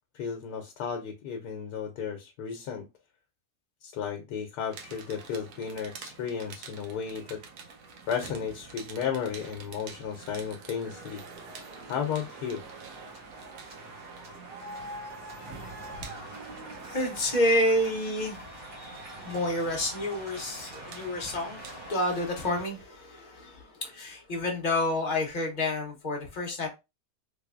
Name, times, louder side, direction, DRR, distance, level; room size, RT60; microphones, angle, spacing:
voice 1, 0.1-2.9 3.8-7.4 8.1-11.2 11.9-12.6, left 7 dB, 80° left, 1.2 m, -34 dB
sound 1, 4.7-21.9, right 4 dB, 90° right, 1.3 m, -46 dB
sound 2, 11.4-22.7, equal, 50° right, 1.6 m, -45 dB
voice 2, 16.8-18.5 19.2-26.7, left 1 dB, 35° left, 0.9 m, -29 dB
3.3 x 3.3 x 2.4 m
omnidirectional pair, 1.7 m